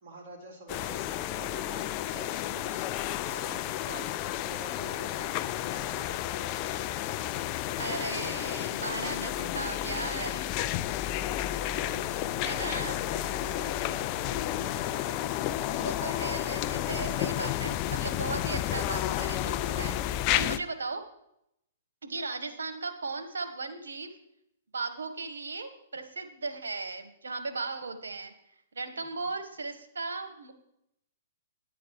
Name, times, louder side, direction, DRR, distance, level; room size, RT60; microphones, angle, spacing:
voice 1, 0.0-7.5 11.2-15.9 16.9-17.4 29.2-29.3, right 2 dB, 50° right, -1 dB, 3.9 m, -48 dB
sound 1, 0.7-20.6, left 13 dB, 40° left, 0.5 m, -31 dB
voice 2, 2.3-2.9 7.8-10.5 12.4-13.0 15.7-21.0 22.0-24.1 24.7-28.3 28.7-30.5, right 3 dB, 85° right, 7 dB, 1.4 m, -37 dB
10.0 x 9.1 x 4.7 m, 0.78 s
hypercardioid pair, 130°, 0 cm